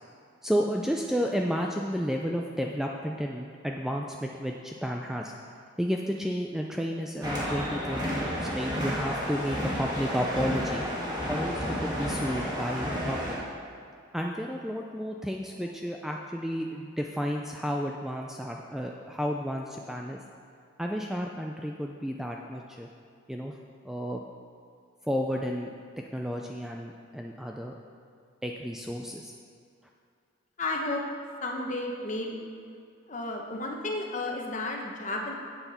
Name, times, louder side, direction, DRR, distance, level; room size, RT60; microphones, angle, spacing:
voice 1, 0.4-5.3 5.8-10.9 11.3-13.4 14.1-20.2 20.8-22.9 23.3-23.6 23.8-24.2 25.1-25.7 26.1-27.7 28.4-29.3, equal, ahead, 0 dB, 0.3 m, -32 dB
sound 1, 7.2-13.4, equal, 20° right, 1.9 m, -31 dB
voice 2, 30.6-31.0 31.4-32.4 33.1-35.3, left 2 dB, 40° left, 1 dB, 1.0 m, -32 dB
8.0 x 6.9 x 5.7 m, 2.3 s
head